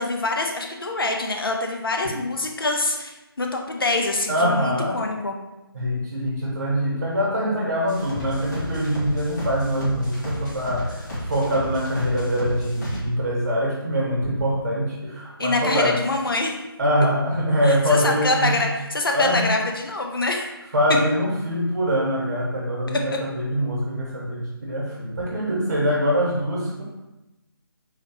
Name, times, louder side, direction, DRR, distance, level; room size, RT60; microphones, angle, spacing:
voice 1, 0.0-5.4 15.4-16.6 17.6-20.5 22.9-23.0, left 2 dB, 65° left, 2 dB, 0.6 m, -25 dB
voice 2, 4.3-5.0 5.7-15.9 16.8-18.6 19.1-19.6 20.7-26.8, equal, 45° right, -4 dB, 1.5 m, -24 dB
sound 1, 7.9-13.0, equal, 45° left, 1.5 m, -32 dB
4.0 x 2.9 x 3.0 m, 1.0 s
figure-of-eight pair, 155°, 13 cm